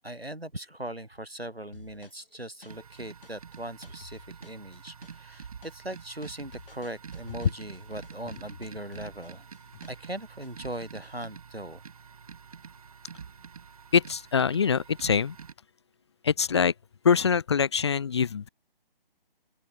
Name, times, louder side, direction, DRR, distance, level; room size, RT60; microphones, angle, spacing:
voice 1, 0.0-9.5 9.9-11.8, right 1 dB, 90° right, 2.9 m, -39 dB
sound 1, 1.7-10.2 10.4-11.3, left 3 dB, 65° left, 7.5 m, -52 dB
sound 2, 2.7-15.5, right 6 dB, 40° right, 1.3 m, -47 dB
voice 2, 13.9-15.4 16.2-16.7 17.0-18.5, left 6 dB, 30° left, 0.8 m, -24 dB
open air
figure-of-eight pair, 145°, 29 cm